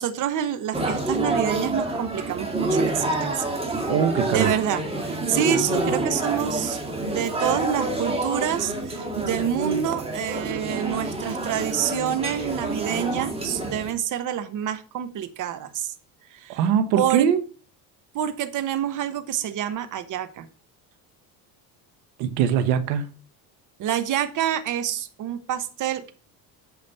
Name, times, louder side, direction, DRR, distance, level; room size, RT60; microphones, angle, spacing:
voice 1, 0.0-3.4 4.3-4.8 5.1-15.9 16.3-16.7 16.9-17.3 18.1-20.5 23.8-26.1, right 10 dB, 50° right, 1.1 m, -27 dB
sound 1, 0.7-13.9, right 2 dB, 15° right, 2.2 m, -28 dB
voice 2, 3.9-4.5 16.5-17.4 22.2-23.1, right 8 dB, 85° right, 1.1 m, -22 dB
8.2 x 5.1 x 5.4 m
cardioid pair, 110°, 39 cm